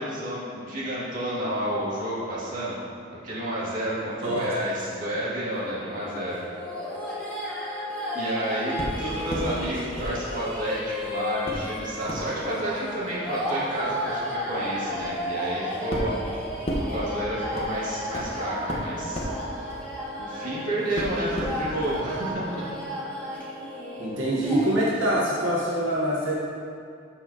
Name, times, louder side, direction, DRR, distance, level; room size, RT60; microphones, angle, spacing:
voice 1, 0.0-2.7 3.2-6.4 6.8-7.0 8.1-16.2 16.9-19.3 20.2-22.6, right 1 dB, 45° right, -8 dB, 2.1 m, -30 dB
sound 1, 5.5-24.7, left 1 dB, 5° left, 1.5 m, -33 dB
sound 2, 8.8-9.5 10.0-10.9 11.4-20.5 21.0-22.0 22.3-22.4, equal, 35° left, 1.0 m, -35 dB
voice 2, 24.0-26.3, right 1 dB, 85° right, -6 dB, 1.1 m, -24 dB
13.0 x 5.7 x 2.8 m, 2.3 s
head